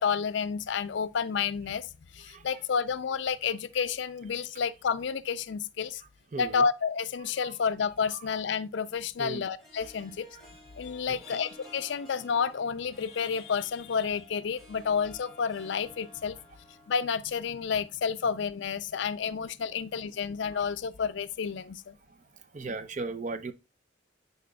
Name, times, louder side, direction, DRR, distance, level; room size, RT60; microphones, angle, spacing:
voice 1, 0.0-6.0 6.4-10.3 10.8-16.4 16.9-22.0 22.6-22.8, left 6 dB, 65° left, 0.4 m, -30 dB
voice 2, 6.3-6.6 9.2-9.4 11.1-11.2 22.5-23.5, right 3 dB, 40° right, 0.4 m, -36 dB
Harp, 8.2-18.6, left 1 dB, ahead, 1.2 m, -54 dB
10.0 x 4.1 x 2.2 m
head